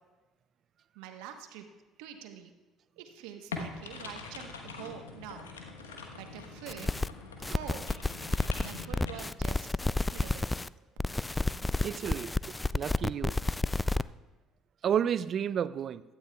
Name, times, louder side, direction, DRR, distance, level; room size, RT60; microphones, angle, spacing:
voice 1, 0.9-1.7 2.0-2.5 3.0-5.5 6.1-6.9 7.4-7.9 8.6-10.5, right 9 dB, 75° right, 1.1 m, -46 dB
sound 1, 3.5-9.1, left 4 dB, 90° left, 1.1 m, -43 dB
sound 2, 6.7-7.1 7.4-10.7 11.0-14.0, left 2 dB, 15° left, 0.3 m, -31 dB
voice 2, 11.8-12.4 12.7-13.4 14.8-16.0, right 8 dB, 50° right, 0.4 m, -31 dB
16.0 x 12.0 x 2.3 m
hypercardioid pair, 55°, 0 cm